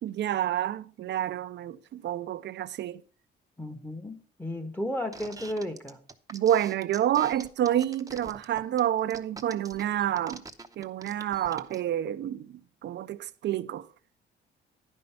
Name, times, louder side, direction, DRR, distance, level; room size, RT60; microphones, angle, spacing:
voice 1, 0.0-3.0 6.3-10.4 10.8-13.9, right 11 dB, 65° right, 0.5 m, -29 dB
voice 2, 3.6-6.0, left 1 dB, 10° left, 1.2 m, -34 dB
sound 1, 5.1-11.8, right 3 dB, 15° right, 0.8 m, -44 dB
10.5 x 5.4 x 5.6 m
cardioid pair, 90°, 20 cm